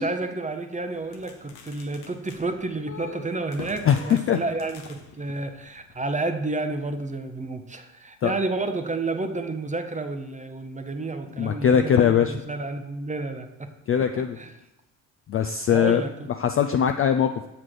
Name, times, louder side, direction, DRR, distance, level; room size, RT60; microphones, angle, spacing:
voice 1, 0.0-13.7 14.4-14.5 15.7-16.3, right 2 dB, 15° right, 8 dB, 0.7 m, -30 dB
sound 1, 0.9-6.1, left 6 dB, 75° left, 0.9 m, -47 dB
voice 2, 2.9-3.3 3.8-4.4 8.2-8.3 11.4-12.4 13.9-14.4 15.3-16.0 16.4-17.5, left 8 dB, 30° left, 6 dB, 0.3 m, -21 dB
7.3 x 4.2 x 4.8 m, 0.98 s
hypercardioid pair, 45°, 49 cm